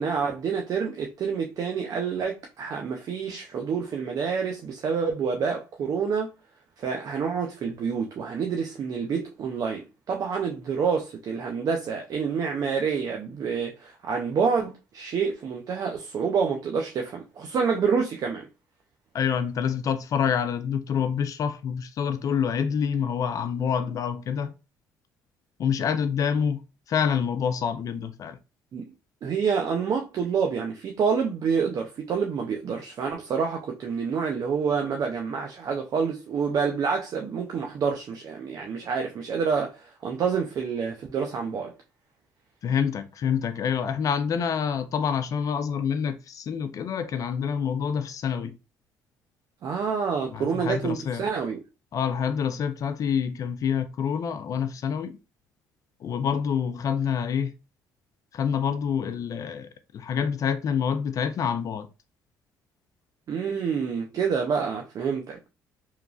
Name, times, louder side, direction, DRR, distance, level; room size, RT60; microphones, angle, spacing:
voice 1, 0.0-6.3 6.8-18.5 28.7-28.9 29.2-41.7 49.6-51.6 63.3-65.5, right 6 dB, 55° right, 0.5 m, -28 dB
voice 2, 19.1-24.5 25.6-26.6 26.9-28.4 42.6-48.5 50.3-51.3 51.9-55.2 56.0-57.5 58.3-61.9, left 7 dB, 50° left, 0.3 m, -27 dB
2.9 x 2.4 x 2.3 m
supercardioid pair, 75°, 7 cm